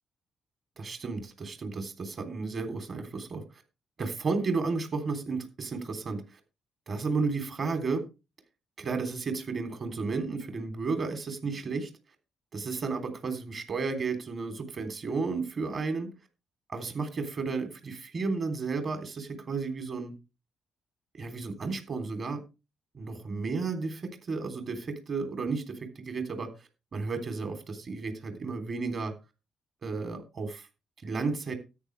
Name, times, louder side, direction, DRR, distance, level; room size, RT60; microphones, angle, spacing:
voice 1, 0.8-3.4 4.0-6.4 6.9-8.0 8.8-11.9 12.5-16.1 16.7-20.1 21.1-22.4 22.9-26.5 26.9-29.1 29.8-30.7 31.0-31.5, right 4 dB, 45° right, 6 dB, 3.4 m, -33 dB
13.5 x 9.6 x 3.4 m, 0.28 s
cardioid pair, 90°, 0 cm